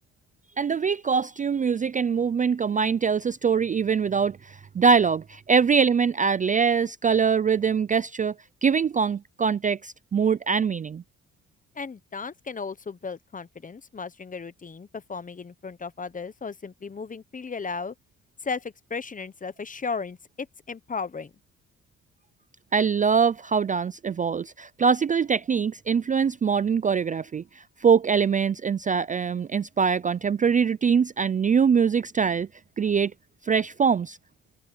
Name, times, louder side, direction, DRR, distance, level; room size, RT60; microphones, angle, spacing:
voice 1, 0.6-8.3 8.6-11.0 22.7-32.5 32.8-33.1 33.4-34.2, right 6 dB, 25° right, 0.4 m, -23 dB
voice 2, 11.7-17.9 18.4-21.3, left 5 dB, 25° left, 1.0 m, -35 dB
cardioid pair, 90°, 30 cm